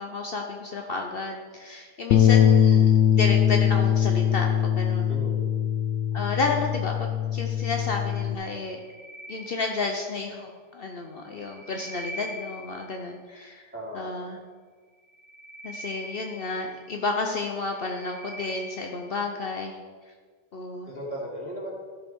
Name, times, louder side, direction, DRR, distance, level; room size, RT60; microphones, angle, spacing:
voice 1, 0.0-5.1 6.1-8.8 9.3-13.7 13.9-14.4 15.6-19.8 20.5-20.9, left 3 dB, 55° left, 2 dB, 1.0 m, -31 dB
Bass guitar, 2.1-8.4, left 9 dB, 85° left, 0.9 m, -21 dB
voice 2, 5.1-5.4 13.7-14.1 20.9-21.7, equal, 10° right, -6 dB, 3.2 m, -36 dB
sound 1, 8.7-10.3 11.2-13.1 15.0-17.1 17.6-19.2, equal, 55° right, 1.7 m, -42 dB
13.5 x 6.6 x 4.6 m, 1.5 s
omnidirectional pair, 1.2 m